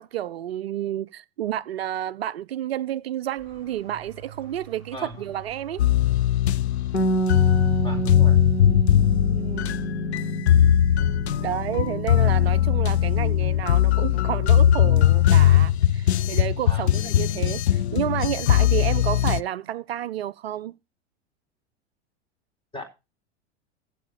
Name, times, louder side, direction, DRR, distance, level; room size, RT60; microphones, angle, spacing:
voice 1, 0.0-5.8 9.3-9.7 11.4-20.7, right 12 dB, 65° right, 0.5 m, -30 dB
sound 1, 3.4-9.3, right 3 dB, 35° left, 6.1 m, -47 dB
voice 2, 4.9-5.3 7.8-8.4 16.6-17.0 22.7-22.8, left 2 dB, 15° left, 4.2 m, -37 dB
sound 2, 5.8-19.4, left 11 dB, 70° left, 0.5 m, -20 dB
Bass guitar, 6.9-13.2, right 4 dB, 85° left, 1.3 m, -30 dB
15.5 x 6.6 x 5.5 m
figure-of-eight pair, 85°, 34 cm